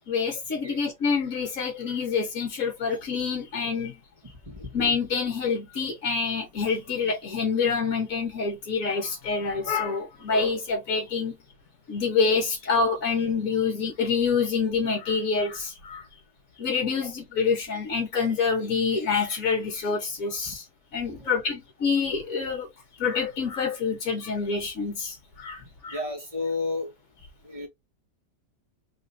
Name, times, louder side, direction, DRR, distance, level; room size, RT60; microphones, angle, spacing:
voice 1, 0.1-4.0 4.7-11.3 11.9-16.1 16.6-20.6 20.9-22.7 23.0-26.0, left 5 dB, 55° left, 1.4 m, -27 dB
voice 2, 21.2-21.5 25.9-26.9 27.4-27.7, left 3 dB, 20° right, 1.6 m, -32 dB
3.7 x 3.1 x 2.6 m
omnidirectional pair, 1.8 m